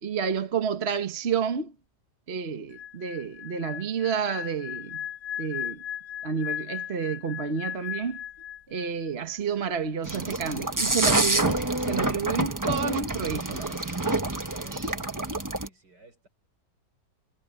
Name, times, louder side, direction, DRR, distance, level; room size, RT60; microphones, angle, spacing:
voice 1, 0.0-1.7 2.3-5.0 5.4-5.8 6.2-8.2 8.7-13.8, right 6 dB, 40° right, 1.4 m, -30 dB
sound 1, 2.7-9.1 9.3-9.6, left 10 dB, 55° left, 2.4 m, -37 dB
sound 2, 10.0-15.7, right 2 dB, 15° right, 0.9 m, -27 dB
voice 2, 14.6-16.3, right 2 dB, 70° right, 6.2 m, -53 dB
omnidirectional pair, 1.9 m